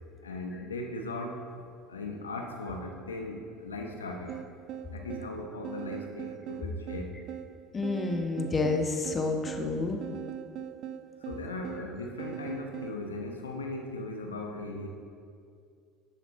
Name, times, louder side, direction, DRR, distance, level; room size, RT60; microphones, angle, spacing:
voice 1, 0.2-1.5 1.9-4.4 4.9-7.2 11.2-14.9, left 2 dB, 85° left, 2 dB, 0.9 m, -38 dB
sound 1, 4.3-13.0, right 9 dB, 55° right, 0.5 m, -41 dB
voice 2, 7.7-10.0, left 3 dB, 25° left, 4 dB, 1.1 m, -29 dB
12.5 x 7.7 x 2.9 m, 2.3 s
hypercardioid pair, 70°, 0 cm